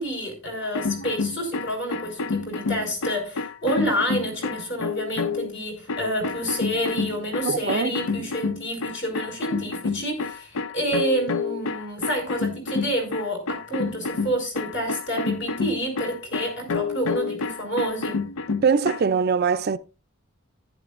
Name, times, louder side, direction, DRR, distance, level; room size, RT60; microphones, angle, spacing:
voice 1, 0.0-18.2, equal, 55° left, 4.9 m, -29 dB
sound 1, 0.6-5.5 5.9-19.0, left 4 dB, 75° left, 0.6 m, -29 dB
voice 2, 7.4-8.0 18.6-19.8, right 5 dB, 45° right, 0.4 m, -22 dB
14.5 x 11.0 x 2.5 m
head